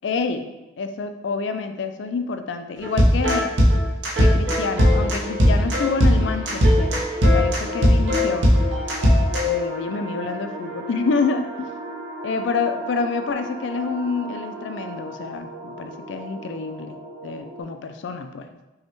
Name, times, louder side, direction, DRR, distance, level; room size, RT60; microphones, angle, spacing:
voice 1, 0.0-0.5 0.8-3.5 4.2-7.0 7.3-8.5 9.4-11.7 12.2-17.0 17.2-18.5, left 4 dB, 75° left, 8 dB, 0.4 m, -27 dB
sound 1, 2.8-9.6, equal, 85° right, 0.9 m, -18 dB
sound 2, 4.6-17.6, right 1 dB, 45° right, 1.0 m, -36 dB
5.4 x 2.2 x 3.0 m, 1.0 s
head